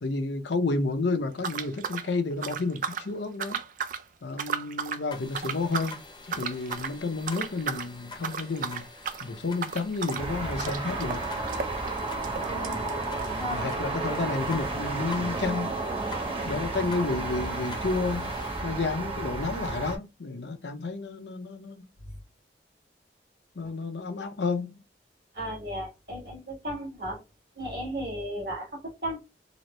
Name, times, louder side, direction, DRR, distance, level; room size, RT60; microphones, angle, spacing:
voice 1, 0.0-3.6 4.2-6.0 6.3-8.8 9.2-11.2 13.5-15.7 16.4-18.3 18.6-21.8 23.6-24.7, left 3 dB, 80° left, 0.7 m, -31 dB
sound 1, 1.4-3.1 3.4-4.0 4.3-5.0 5.3-6.0 6.3-7.0 7.3-7.9 8.2-13.9 14.1-14.2 14.4-14.5 15.2-15.3, right 6 dB, 45° right, 0.4 m, -35 dB
sound 2, 5.1-18.6, left 3 dB, 25° left, 0.7 m, -46 dB
sound 3, 10.2-20.0, right 3 dB, 30° right, 1.0 m, -32 dB
voice 2, 12.5-13.6 23.6-23.7 25.3-27.2 27.6-29.2, equal, 60° right, 1.7 m, -35 dB
3.9 x 2.0 x 3.1 m
head